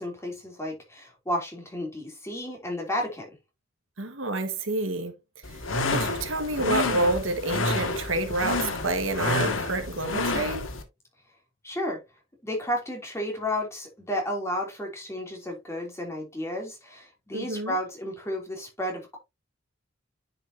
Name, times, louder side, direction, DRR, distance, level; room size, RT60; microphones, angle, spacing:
voice 1, 0.0-3.3 11.6-12.0 12.4-19.2, left 1 dB, 15° left, 3.2 m, -32 dB
voice 2, 4.0-5.1 5.5-10.7 17.3-17.8, right 2 dB, 90° right, 1.8 m, -29 dB
sound 1, 5.4-10.8, left 2 dB, 90° left, 1.9 m, -29 dB
10.0 x 5.8 x 2.9 m
head